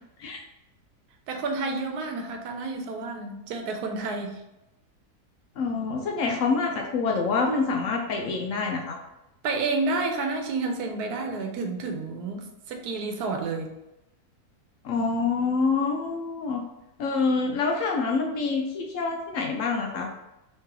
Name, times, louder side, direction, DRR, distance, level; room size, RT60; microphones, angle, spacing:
voice 1, 1.3-4.4 9.4-13.7, right 3 dB, 85° right, 4 dB, 1.1 m, -30 dB
voice 2, 5.6-9.0 14.8-16.6 17.0-20.1, left 4 dB, 70° left, 2 dB, 0.8 m, -26 dB
3.7 x 3.1 x 2.8 m, 0.92 s
omnidirectional pair, 1.6 m